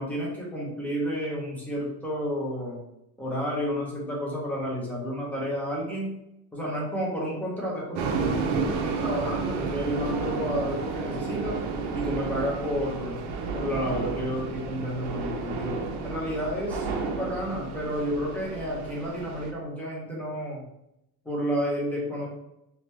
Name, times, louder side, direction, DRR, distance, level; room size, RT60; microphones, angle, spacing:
voice 1, 0.0-2.8 3.2-6.1 6.5-11.6 11.9-13.2 13.5-20.6 21.2-22.3, equal, 5° left, -5 dB, 1.2 m, -31 dB
sound 1, 8.0-19.5, right 4 dB, 85° right, 0.8 m, -31 dB
3.8 x 3.1 x 3.4 m, 0.83 s
cardioid pair, 165°, 39 cm